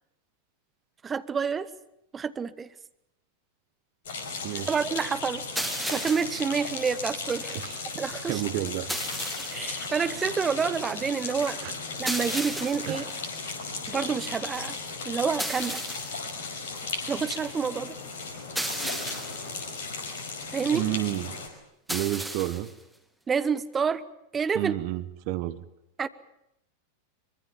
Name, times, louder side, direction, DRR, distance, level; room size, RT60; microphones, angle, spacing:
voice 1, 1.0-1.7 2.1-2.7 4.7-5.4 5.9-7.7 8.0-8.4 9.5-11.6 12.0-13.0 13.9-14.8 15.0-15.8 17.1-18.0 20.5-20.9 23.3-24.0 24.3-24.7 26.0-26.1, right 6 dB, 20° right, 14 dB, 1.3 m, -28 dB
sound 1, 4.0-21.5, left 4 dB, 60° left, 5.0 m, -36 dB
voice 2, 4.4-4.8 7.5-7.8 8.3-8.9 11.6-11.7 12.9-13.1 20.7-21.4 21.9-22.7 24.5-25.6, right 16 dB, 45° right, 15 dB, 1.2 m, -30 dB
sound 2, 5.6-6.5 8.9-9.7 12.1-13.0 15.4-16.2 18.6-19.5 21.9-22.7, right 1 dB, 5° right, 2.3 m, -34 dB
23.5 x 23.5 x 7.3 m, 0.84 s
figure-of-eight pair, 90°, 0 cm